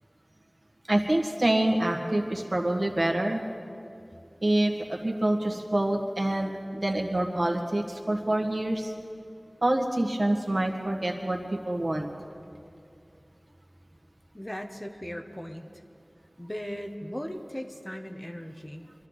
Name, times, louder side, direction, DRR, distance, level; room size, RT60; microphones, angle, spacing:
voice 1, 0.9-3.4 4.4-8.9 9.6-12.1, right 1 dB, 55° right, 0 dB, 1.8 m, -26 dB
voice 2, 14.3-15.7 16.4-18.9, equal, 20° left, 4 dB, 1.1 m, -38 dB
24.5 x 12.5 x 4.1 m, 2.5 s
wide cardioid pair, 40°, 0 cm